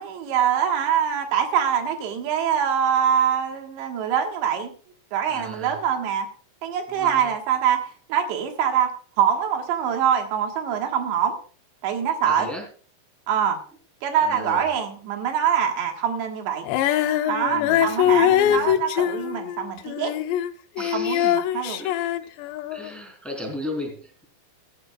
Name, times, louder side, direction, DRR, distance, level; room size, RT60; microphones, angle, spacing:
voice 1, 0.0-4.7 5.1-6.3 6.6-8.9 9.2-11.4 11.8-12.5 13.3-13.6 14.0-16.7 17.3-20.1 20.9-21.8, right 8 dB, 85° right, 4 dB, 3.9 m, -24 dB
voice 2, 5.3-5.8 6.9-7.3 12.2-12.6 14.2-14.7 17.5-18.8 20.8-21.3 21.8-21.9 22.7-24.2, left 1 dB, ahead, 1 dB, 3.5 m, -36 dB
Female singing, 16.7-20.5 20.8-22.9, left 11 dB, 85° left, 2.9 m, -23 dB
15.5 x 13.0 x 2.4 m, 0.39 s
omnidirectional pair, 5.0 m